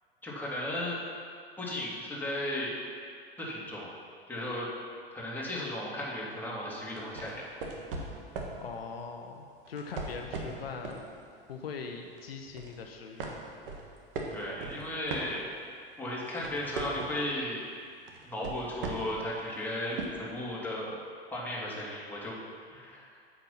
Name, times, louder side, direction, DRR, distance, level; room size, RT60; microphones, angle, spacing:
voice 1, 0.2-1.0 1.6-2.7 3.4-3.9 4.3-4.7 5.1-7.4 14.3-15.4 16.0-17.6 18.2-21.0 21.3-22.4 22.7-23.2, left 1 dB, 5° left, -6 dB, 2.9 m, -35 dB
sound 1, 6.9-8.6 9.6-11.1 11.5-11.7 12.1-12.8 13.2-15.8 16.1-17.3 18.1-19.2 20.0-20.1, right 3 dB, 65° right, 1.7 m, -38 dB
voice 2, 8.6-11.0 11.5-13.3, left 5 dB, 75° left, 3 dB, 0.9 m, -41 dB
8.9 x 7.8 x 5.9 m, 2.2 s
figure-of-eight pair, 85°, 30 cm